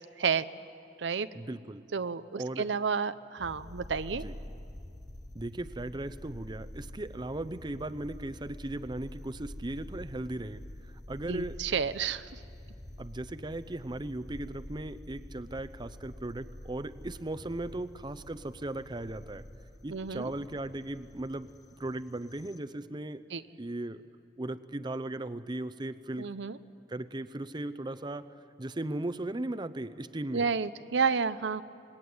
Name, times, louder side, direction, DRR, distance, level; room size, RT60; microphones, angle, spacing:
voice 1, 1.3-1.8 2.4-2.7 4.2-4.3 5.3-11.6 13.0-19.4 19.8-21.5 21.8-23.2 23.6-24.0 24.4-26.3 26.9-30.5, right 1 dB, 25° right, 12 dB, 0.7 m, -37 dB
voice 2, 1.9-4.2 11.3-12.3 19.9-20.3 23.3-23.4 26.2-26.6 30.3-31.6, right 5 dB, 85° right, 13 dB, 0.7 m, -30 dB
sound 1, 3.4-22.6, left 1 dB, 20° left, 0.7 m, -47 dB
26.5 x 20.5 x 9.5 m, 2.5 s
head